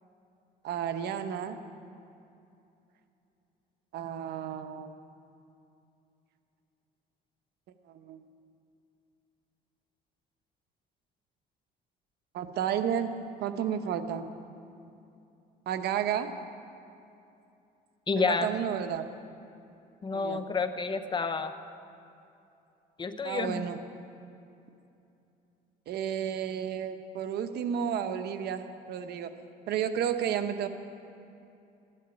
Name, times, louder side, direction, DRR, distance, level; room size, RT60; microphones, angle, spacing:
voice 1, 0.6-1.6 3.9-4.9 8.0-8.2 12.3-13.1 13.4-14.3 15.7-16.3 18.2-19.1 20.1-20.4 23.2-23.8 25.9-28.6 28.9-29.3 29.7-30.7, right 9 dB, 75° right, 9 dB, 1.0 m, -31 dB
voice 2, 18.1-18.5 20.0-21.5 23.0-23.6, left 4 dB, 30° left, 9 dB, 0.9 m, -29 dB
14.0 x 11.0 x 9.1 m, 2.7 s
cardioid pair, 110°, 17 cm